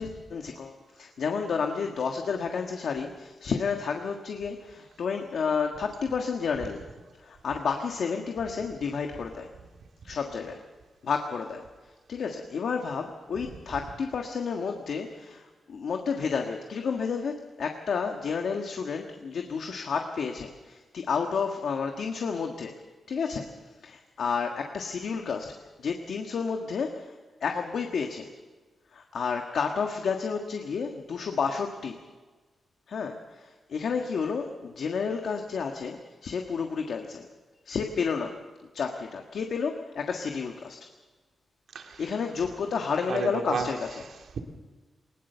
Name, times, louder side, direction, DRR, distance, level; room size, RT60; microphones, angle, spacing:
voice 1, 0.0-6.8 7.2-9.5 10.0-10.6 11.0-11.6 12.1-22.7 23.1-23.5 23.8-28.3 28.9-32.0 32.9-37.3 37.6-38.4 38.7-40.8 42.0-44.0, left 5 dB, 70° left, 3 dB, 1.6 m, -31 dB
voice 2, 41.7-42.2 42.4-42.5 42.9-44.4, right 5 dB, 70° right, 4 dB, 2.3 m, -34 dB
20.0 x 20.0 x 6.9 m, 1.3 s
wide cardioid pair, 135°, 0 cm